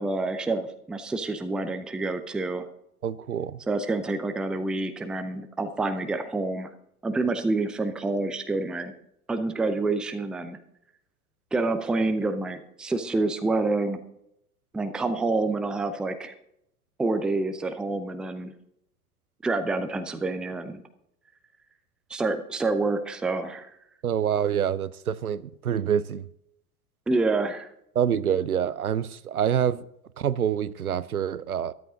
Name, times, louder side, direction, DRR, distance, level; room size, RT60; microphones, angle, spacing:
voice 1, 0.0-2.7 3.7-6.7 7.0-8.9 9.3-10.6 11.5-14.0 14.7-16.3 17.0-18.5 19.4-20.8 22.1-23.7 27.1-27.7, right 3 dB, ahead, 0.5 m, -27 dB
voice 2, 3.0-3.6 24.0-26.2 28.0-29.8 30.2-31.7, right 9 dB, 75° right, 0.6 m, -26 dB
13.5 x 12.5 x 3.8 m
figure-of-eight pair, 90°, 44 cm